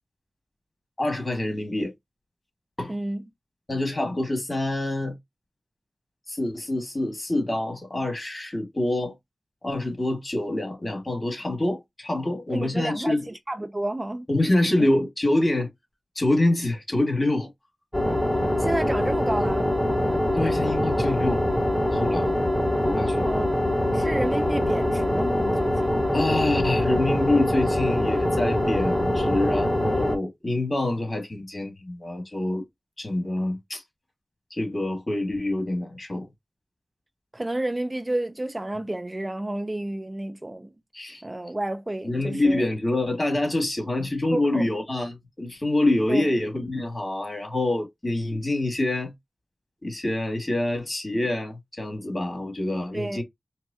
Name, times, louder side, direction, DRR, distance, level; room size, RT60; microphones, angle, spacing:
voice 1, 1.0-1.9 2.8-2.9 3.7-5.2 6.3-9.2 9.6-13.3 14.3-15.7 16.2-17.5 20.3-21.4 21.9-22.3 22.9-23.3 26.1-32.6 33.0-33.8 34.5-36.3 40.9-41.2 42.0-49.1 49.8-53.2, left 1 dB, 35° left, 2.0 m, -26 dB
voice 2, 2.9-3.2 12.5-13.2 13.5-14.3 14.8-14.9 18.6-19.7 23.2-26.0 37.3-40.7 41.2-42.6 44.3-44.7 46.1-46.3 52.9-53.2, right 1 dB, 25° right, 0.4 m, -30 dB
sound 1, 17.9-30.2, left 1 dB, 10° left, 1.0 m, -24 dB
4.7 x 2.2 x 2.7 m
wide cardioid pair, 55°, 0 cm